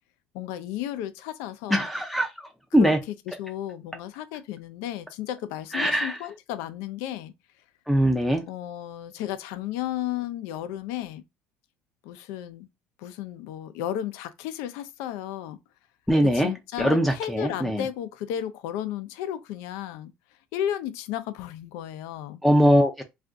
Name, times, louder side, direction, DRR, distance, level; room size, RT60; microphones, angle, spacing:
voice 1, 0.3-1.9 2.8-7.3 8.5-11.2 12.0-12.7 13.0-15.6 16.2-20.1 20.5-22.4, left 11 dB, 85° left, 0.4 m, -33 dB
voice 2, 1.7-2.3 2.7-3.0 5.7-6.2 7.9-8.4 16.1-16.5 16.8-17.8 22.4-23.0, equal, 5° left, 0.4 m, -21 dB
2.4 x 2.3 x 3.7 m
cardioid pair, 120°, 4 cm